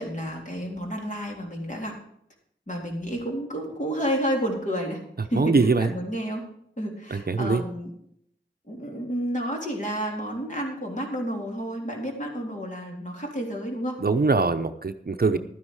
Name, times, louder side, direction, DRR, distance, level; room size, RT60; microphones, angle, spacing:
voice 1, 0.0-1.9 2.7-5.0 5.3-6.5 6.8-7.9 8.7-14.0, equal, 40° left, 0 dB, 3.7 m, -30 dB
voice 2, 5.3-5.9 7.1-7.6 14.0-15.4, right 4 dB, 50° right, 9 dB, 0.8 m, -22 dB
12.5 x 9.8 x 4.8 m, 0.70 s
wide cardioid pair, 45°, 20 cm